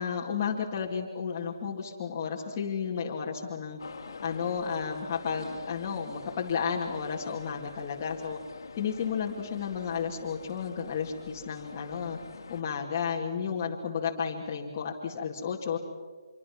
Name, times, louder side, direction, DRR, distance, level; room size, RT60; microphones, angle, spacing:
voice 1, 0.0-3.8 4.2-8.4 8.7-12.2 12.5-15.8, left 6 dB, 25° left, -4 dB, 2.2 m, -32 dB
sound 1, 3.8-12.6, left 4 dB, 60° left, 2.2 m, -46 dB
26.0 x 24.0 x 6.0 m, 1.5 s
hypercardioid pair, 170°, 2 cm